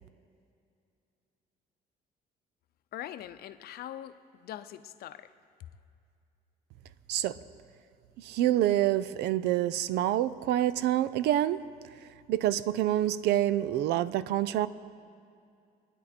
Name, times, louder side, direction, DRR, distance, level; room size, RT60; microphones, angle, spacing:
voice 1, 2.9-5.3, left 12 dB, 65° left, 11 dB, 0.6 m, -42 dB
voice 2, 8.2-11.6 12.3-14.7, right 13 dB, 80° right, 17 dB, 0.5 m, -27 dB
23.0 x 9.9 x 4.3 m, 2.4 s
cardioid pair, 110°, 17 cm